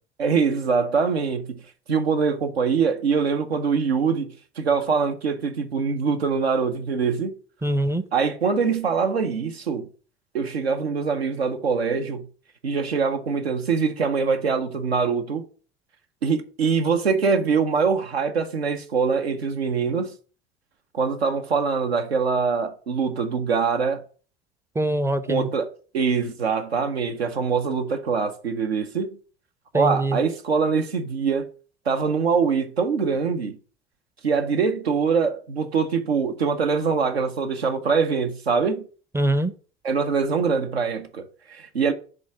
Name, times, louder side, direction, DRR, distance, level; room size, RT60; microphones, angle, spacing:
voice 1, 0.2-1.6 1.9-7.3 8.1-9.9 10.3-12.2 12.6-15.4 16.2-20.1 20.9-24.0 25.3-25.7 25.9-29.1 29.7-31.5 31.9-33.6 34.2-38.9 39.8-41.9, right 5 dB, 90° right, 0.7 m, -23 dB
voice 2, 7.6-8.0 24.8-25.5 29.7-30.2 39.1-39.5, right 1 dB, 10° right, 0.4 m, -23 dB
5.2 x 3.5 x 5.7 m
hypercardioid pair, 70°, 31 cm